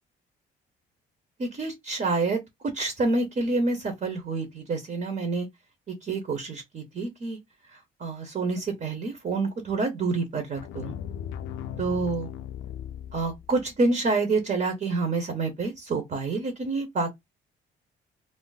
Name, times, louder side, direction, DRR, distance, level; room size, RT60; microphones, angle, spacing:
voice 1, 1.4-5.5 5.9-7.4 7.7-10.9 11.8-12.3 13.1-17.1, right 3 dB, 40° right, 1.0 m, -28 dB
sound 1, 10.6-13.7, left 9 dB, 85° left, 0.4 m, -37 dB
2.6 x 2.0 x 3.8 m
cardioid pair, 90°, 20 cm